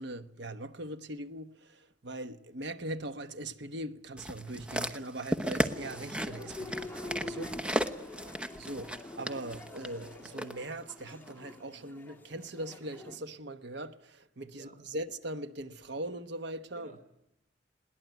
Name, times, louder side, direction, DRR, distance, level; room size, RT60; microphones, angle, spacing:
voice 1, 0.0-7.6 8.6-17.0, right 1 dB, 65° right, 1.1 m, -41 dB
sound 1, 4.2-10.5 11.3-11.4, equal, 5° right, 1.0 m, -35 dB
sound 2, 5.7-13.2, left 2 dB, 10° left, 2.5 m, -46 dB
voice 2, 7.6-8.4 14.5-14.9 16.7-17.0, right 1 dB, 45° right, 3.2 m, -54 dB
21.5 x 19.0 x 9.4 m
head